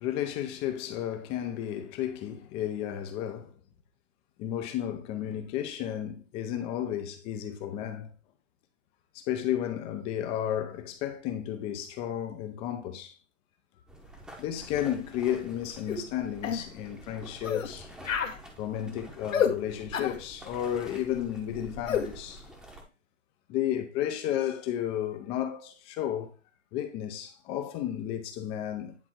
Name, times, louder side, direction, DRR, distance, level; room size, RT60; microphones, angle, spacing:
voice 1, 0.0-3.5 4.4-8.1 9.1-13.1 14.4-17.9 18.6-22.4 23.5-26.3 26.7-29.0, left 11 dB, 15° left, 0.6 m, -33 dB
sound 1, 13.9-22.8, right 1 dB, ahead, 0.9 m, -48 dB
sound 2, 15.9-16.0 16.4-16.6 17.4-17.7 18.0-18.4 19.3-19.5 19.9-20.2 21.9-22.1, left 7 dB, 80° left, 1.6 m, -28 dB
10.0 x 3.5 x 4.3 m
hypercardioid pair, 150°, 38 cm